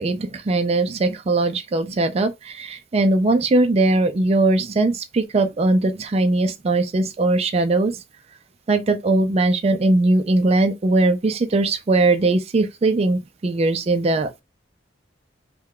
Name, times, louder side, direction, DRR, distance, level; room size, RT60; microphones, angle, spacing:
voice 1, 0.0-8.0 8.7-14.3, right 2 dB, 35° right, 0.4 m, -20 dB
3.3 x 2.2 x 3.6 m
head